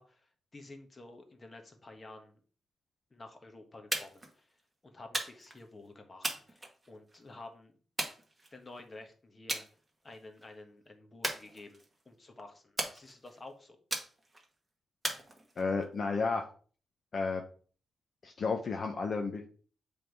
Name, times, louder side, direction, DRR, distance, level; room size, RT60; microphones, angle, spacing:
voice 1, 0.0-2.4 3.1-4.6 4.8-7.7 8.5-9.7 10.0-11.8 12.0-13.8, left 2 dB, 30° left, 5 dB, 1.3 m, -51 dB
sound 1, 3.9-4.3 5.1-5.6 6.2-7.2 8.0-8.8 9.5-9.7 10.1-10.4 11.2-12.0 12.8-13.4 13.9-14.5 15.0-15.8, right 2 dB, 15° right, 1.5 m, -37 dB
voice 2, 15.6-16.4 17.1-17.4 18.2-19.5, left 4 dB, 50° left, 4 dB, 0.8 m, -32 dB
7.5 x 3.6 x 4.7 m, 0.41 s
cardioid pair, 105°, 0 cm